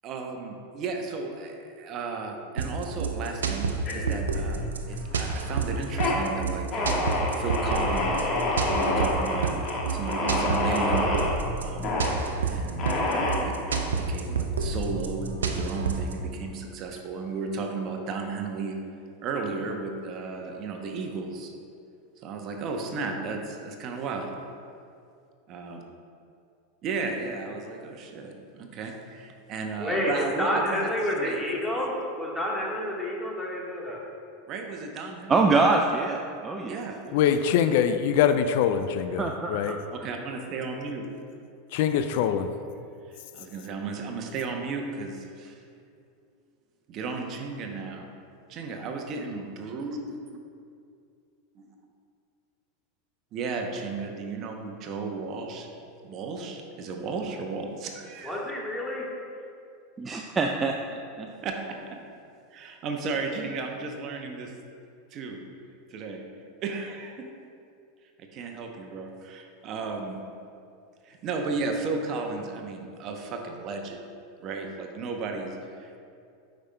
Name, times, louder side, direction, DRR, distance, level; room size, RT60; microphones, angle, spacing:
voice 1, 0.0-8.3 8.7-9.5 9.9-11.1 11.6-12.0 12.4-13.5 13.9-18.8 19.2-21.5 22.2-24.3 25.5-25.8 26.8-30.9 31.2-31.4 34.5-35.3 36.7-37.0 40.0-41.1 43.1-45.5 46.9-48.1 48.5-50.2 51.5-51.7 53.3-55.7 56.0-58.4 61.3-62.0 62.5-64.5 65.1-65.4 65.9-66.2 66.6-67.3 68.2-70.2 71.0-74.0 74.4-76.0, right 4 dB, 45° right, 3 dB, 0.7 m, -34 dB
sound 1, 2.6-16.1, right 4 dB, 85° right, 0.5 m, -29 dB
sound 2, 3.9-4.6 4.9-5.4 5.8-6.2 6.7-11.3 11.8-12.2 12.8-13.8, left 2 dB, 40° left, 1.4 m, -27 dB
voice 2, 29.8-34.0 58.2-59.1, left 1 dB, 5° left, -4 dB, 1.4 m, -29 dB
voice 3, 35.3-36.7 39.2-40.1 60.0-60.7 61.2-61.3, right 3 dB, 25° right, 2 dB, 0.4 m, -25 dB
voice 4, 37.1-39.8 41.7-42.5, left 8 dB, 65° left, 9 dB, 0.3 m, -23 dB
9.4 x 5.1 x 2.2 m, 2.4 s
hypercardioid pair, 95°, 0 cm